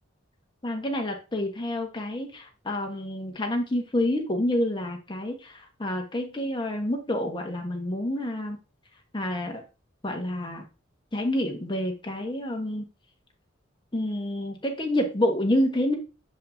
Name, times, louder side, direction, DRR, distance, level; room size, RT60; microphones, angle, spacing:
voice 1, 0.6-8.6 9.1-9.6 10.0-10.7 11.1-12.9 13.9-15.9, left 1 dB, 25° left, 2 dB, 1.2 m, -28 dB
7.1 x 4.9 x 2.7 m, 0.31 s
head